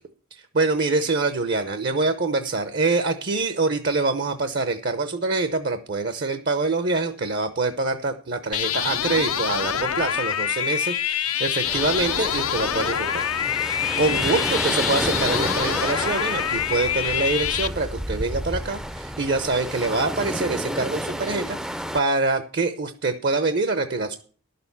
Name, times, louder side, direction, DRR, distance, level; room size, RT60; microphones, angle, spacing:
voice 1, 0.5-13.2 14.0-21.6 21.9-24.2, right 3 dB, 50° right, 10 dB, 0.7 m, -25 dB
sound 1, 8.5-17.7, left 10 dB, 80° left, 0.7 m, -26 dB
sound 2, 11.6-22.0, equal, 5° right, 0.5 m, -31 dB
11.5 x 6.8 x 7.0 m, 0.42 s
head